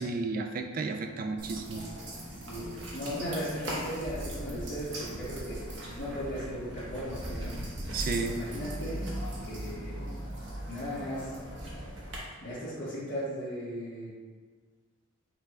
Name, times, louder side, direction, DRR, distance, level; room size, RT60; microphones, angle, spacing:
voice 1, 0.0-1.9 7.9-8.4, right 3 dB, 45° right, 6 dB, 0.4 m, -33 dB
sound 1, 1.4-12.2, right 1 dB, 65° right, 1.0 m, -39 dB
voice 2, 2.3-7.6 8.1-9.0 9.5-10.0 10.7-11.4 12.4-14.1, equal, 60° left, -11 dB, 1.1 m, -37 dB
5.8 x 2.3 x 3.3 m, 1.5 s
head